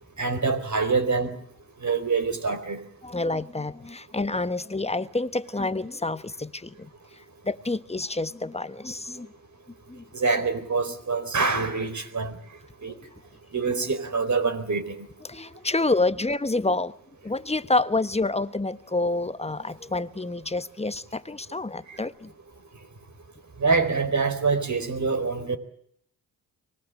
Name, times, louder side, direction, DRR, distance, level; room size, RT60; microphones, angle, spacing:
voice 1, 0.2-1.4 1.8-2.8 10.2-12.4 12.8-12.9 13.5-14.9 23.6-25.6, right 4 dB, 40° right, 4.1 m, -25 dB
voice 2, 3.0-6.9 7.4-9.3 9.9-10.0 12.9-13.0 15.2-16.9 17.2-22.3, left 2 dB, 15° left, 1.2 m, -28 dB
24.5 x 19.0 x 8.7 m
hypercardioid pair, 45°, 43 cm